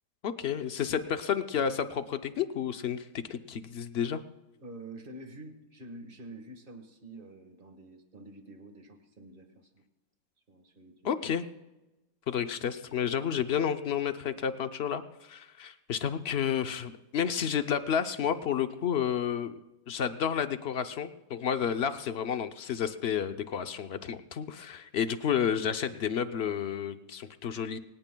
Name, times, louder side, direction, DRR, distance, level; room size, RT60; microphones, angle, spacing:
voice 1, 0.2-4.2 11.0-11.4 12.3-19.6 19.9-27.8, left 8 dB, 55° left, 9 dB, 0.7 m, -31 dB
voice 2, 4.6-9.8 10.5-11.1, right 2 dB, 30° right, 6 dB, 1.7 m, -48 dB
24.0 x 18.0 x 2.3 m, 1.0 s
omnidirectional pair, 1.8 m